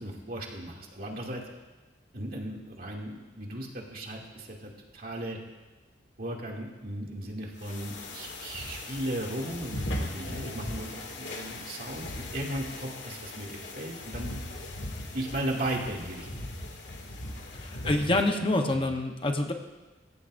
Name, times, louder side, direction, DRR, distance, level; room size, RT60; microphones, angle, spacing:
voice 1, 0.0-1.4 2.1-5.4 6.2-14.3 15.1-16.5 17.8-18.2 18.7-18.9, right 1 dB, 55° right, -1 dB, 2.6 m, -36 dB
sound 1, 7.6-18.3, left 1 dB, 75° left, 2.5 m, -39 dB
voice 2, 17.6-19.5, left 2 dB, 30° left, 3 dB, 1.0 m, -26 dB
25.0 x 15.0 x 2.6 m, 1.2 s
head